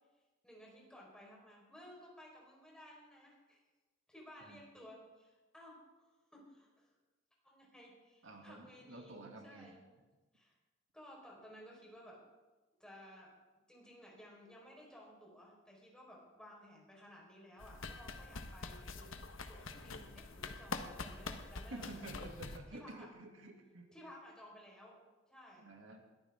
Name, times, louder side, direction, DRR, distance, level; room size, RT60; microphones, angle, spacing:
voice 1, 0.4-3.6 4.1-5.8 6.3-6.9 7.4-9.8 10.3-10.5 10.9-12.2 12.8-13.3 13.7-19.1 19.5-23.1 23.9-25.0 25.3-25.7, equal, 5° left, -3 dB, 4.5 m, -56 dB
voice 2, 8.2-9.7 21.7-23.9 25.6-26.0, right 2 dB, 90° right, 2 dB, 2.4 m, -50 dB
sound 1, 17.6-22.6, left 3 dB, 85° left, 1.2 m, -45 dB
21.0 x 14.0 x 3.7 m, 1.2 s
head